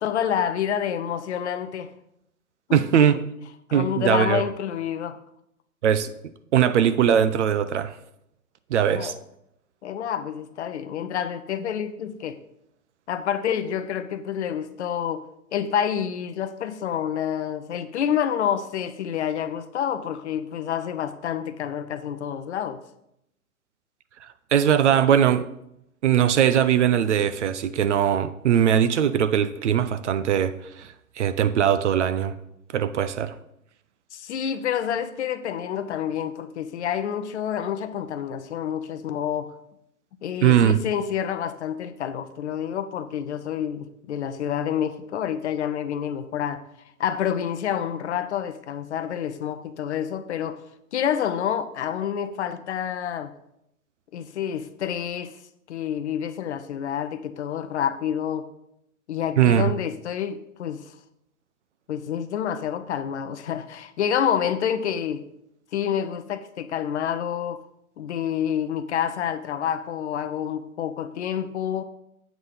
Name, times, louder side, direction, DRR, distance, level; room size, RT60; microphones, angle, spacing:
voice 1, 0.0-1.9 2.7-2.8 3.7-5.2 8.9-9.1 9.8-12.4 13.1-15.2 15.5-22.8 34.1-39.5 40.2-46.6 47.0-50.6 50.9-53.3 54.1-55.4 55.7-58.5 59.1-60.8 61.9-65.2 65.7-67.6 68.0-71.8, left 9 dB, 50° left, 0.7 m, -28 dB
voice 2, 2.7-3.2 3.7-4.4 5.8-6.1 6.5-8.0 8.7-9.1 24.2-25.5 26.0-32.3 32.7-33.3 40.4-40.8 59.4-59.7, right 9 dB, 55° right, 0.6 m, -20 dB
8.1 x 3.8 x 6.7 m
hypercardioid pair, 125°, 44 cm